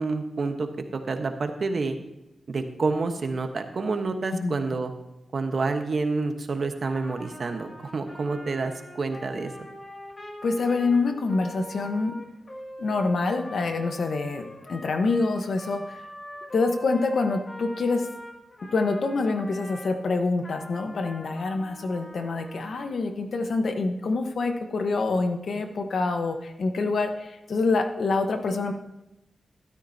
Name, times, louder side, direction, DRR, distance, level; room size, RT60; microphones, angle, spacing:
voice 1, 0.0-2.0 2.5-4.9 5.3-9.5, right 3 dB, 60° right, 6 dB, 1.2 m, -28 dB
Trumpet, 6.9-19.9 20.4-22.9, left 1 dB, 35° left, 2.4 m, -43 dB
voice 2, 10.4-12.2 12.8-16.0 16.5-18.1 18.7-28.7, left 3 dB, 70° left, 6 dB, 1.2 m, -26 dB
13.0 x 12.5 x 2.8 m, 0.94 s
cardioid pair, 70°, 0 cm